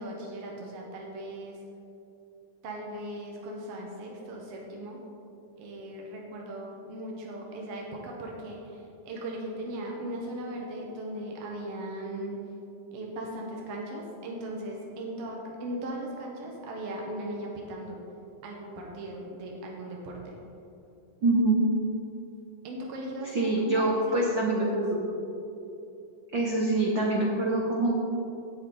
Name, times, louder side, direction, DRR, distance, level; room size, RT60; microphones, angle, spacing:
voice 1, 0.0-1.6 2.6-5.0 5.6-12.3 12.9-18.0 18.4-20.4 22.6-23.9 24.3-24.8, right 1 dB, 60° right, -1 dB, 1.9 m, -38 dB
voice 2, 21.2-21.7 23.3-25.1 26.3-27.9, right 2 dB, 80° right, -2 dB, 1.0 m, -25 dB
16.5 x 6.9 x 3.8 m, 2.8 s
omnidirectional pair, 3.6 m